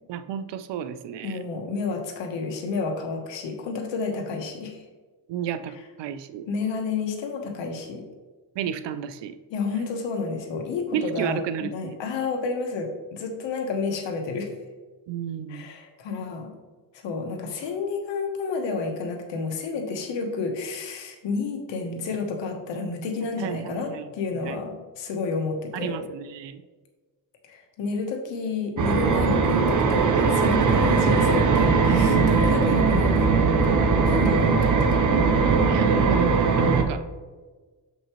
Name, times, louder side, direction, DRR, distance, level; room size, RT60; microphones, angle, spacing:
voice 1, 0.1-1.4 5.3-6.5 8.6-9.4 10.9-12.0 15.1-15.7 23.4-24.1 24.4-24.6 25.7-26.6 35.6-37.0, right 9 dB, 80° right, 12 dB, 0.6 m, -32 dB
voice 2, 1.2-4.8 6.5-8.0 9.5-14.5 15.5-16.5 17.0-26.0 27.4-35.0, left 4 dB, 90° left, 3 dB, 1.2 m, -30 dB
sound 1, 28.8-36.8, right 4 dB, 45° right, 0.8 m, -20 dB
6.6 x 5.3 x 3.1 m, 1.3 s
cardioid pair, 105°, 42 cm